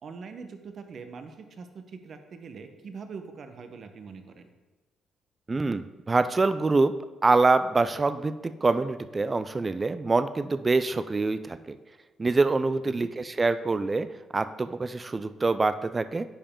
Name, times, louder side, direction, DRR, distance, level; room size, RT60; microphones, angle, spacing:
voice 1, 0.0-4.5 12.9-13.1, right 5 dB, 55° right, 7 dB, 0.8 m, -43 dB
voice 2, 5.5-6.9 7.2-11.8 12.2-14.1 14.3-16.3, right 3 dB, 25° right, 12 dB, 0.3 m, -25 dB
10.0 x 4.9 x 3.7 m, 1.2 s
cardioid pair, 90°, 0 cm